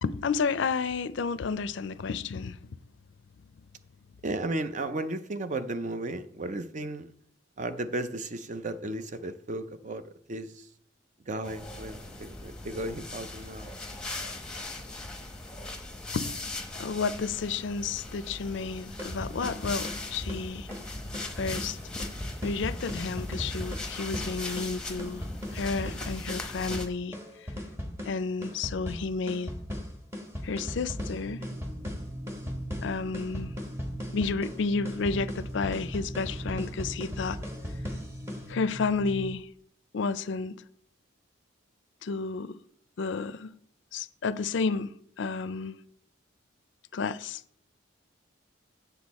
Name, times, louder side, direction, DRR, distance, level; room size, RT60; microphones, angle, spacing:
voice 1, 0.0-2.6 16.1-16.3 16.8-20.7 21.4-21.8 22.4-25.3 25.5-27.2 28.1-29.5 30.4-31.4 32.8-33.5 34.1-37.4 38.5-39.5 39.9-40.6 42.0-42.6 43.0-43.5 43.9-45.8 46.9-47.4, left 4 dB, 60° left, 0.4 m, -31 dB
voice 2, 4.2-7.1 7.6-10.0 10.3-10.6 11.3-13.7, right 2 dB, 40° right, 0.5 m, -34 dB
sound 1, 11.4-26.9, left 2 dB, 5° left, 0.9 m, -39 dB
sound 2, 18.8-38.5, left 1 dB, 15° right, 1.2 m, -38 dB
sound 3, 31.2-39.3, equal, 65° right, 1.6 m, -41 dB
7.9 x 6.9 x 4.1 m
head